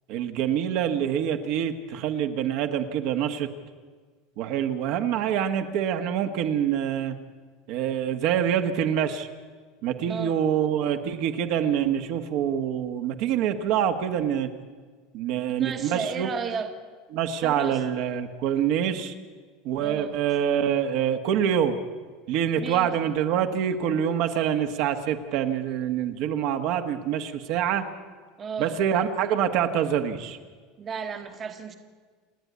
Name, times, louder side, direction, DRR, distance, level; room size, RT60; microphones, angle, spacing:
voice 1, 0.1-3.5 4.4-7.2 7.7-9.3 9.8-14.5 15.1-16.3 17.1-19.1 19.6-21.8 22.3-27.9 28.6-30.4, right 9 dB, 50° right, 6 dB, 1.4 m, -26 dB
voice 2, 15.6-16.7 17.4-17.8 19.8-20.2 22.6-22.9 28.4-28.7 30.8-31.8, right 6 dB, 20° right, 6 dB, 1.3 m, -33 dB
28.0 x 9.9 x 9.5 m, 1.5 s
supercardioid pair, 165°, 0 cm